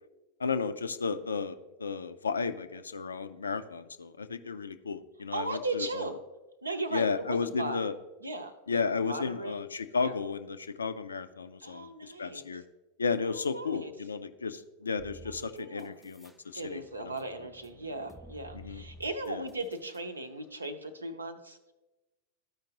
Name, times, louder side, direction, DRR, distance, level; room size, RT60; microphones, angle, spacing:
voice 1, 0.4-5.9 6.9-7.9 8.7-12.6 13.0-17.1 18.5-18.8 19.3-19.4, left 5 dB, 75° left, 11 dB, 0.4 m, -33 dB
voice 2, 5.3-6.2 6.6-7.9 8.2-8.5 9.0-9.6 10.0-10.1 11.6-12.6 13.2-13.9 15.3-16.0 16.5-21.6, right 2 dB, 80° right, 8 dB, 0.7 m, -37 dB
sound 1, 15.0-16.4 16.7-20.0, equal, 5° right, 0.4 m, -52 dB
13.5 x 5.1 x 2.9 m, 1.1 s
figure-of-eight pair, 90°, 0 cm